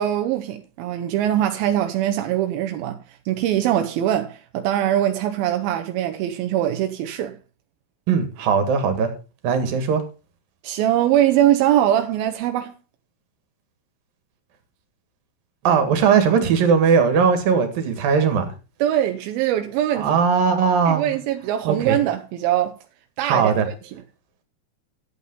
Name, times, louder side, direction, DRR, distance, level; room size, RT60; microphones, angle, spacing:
voice 1, 0.0-7.4 10.6-12.7 18.8-20.1 20.9-22.8 23.2-23.7, right 12 dB, 90° right, 2.7 m, -22 dB
voice 2, 8.1-9.1 9.4-10.0 15.7-18.5 19.9-21.1 21.7-22.0 23.2-23.7, right 6 dB, 75° right, 3.6 m, -19 dB
11.0 x 8.5 x 5.4 m
omnidirectional pair, 4.1 m